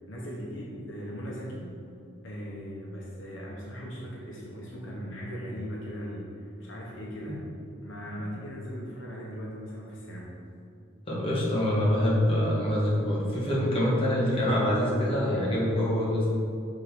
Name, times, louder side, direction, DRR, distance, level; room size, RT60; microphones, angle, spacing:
voice 1, 0.1-1.7 2.2-7.4 7.8-10.3, equal, 65° left, -4 dB, 1.0 m, -38 dB
voice 2, 11.1-16.3, equal, 25° left, -6 dB, 1.3 m, -25 dB
6.5 x 3.7 x 4.4 m, 2.6 s
head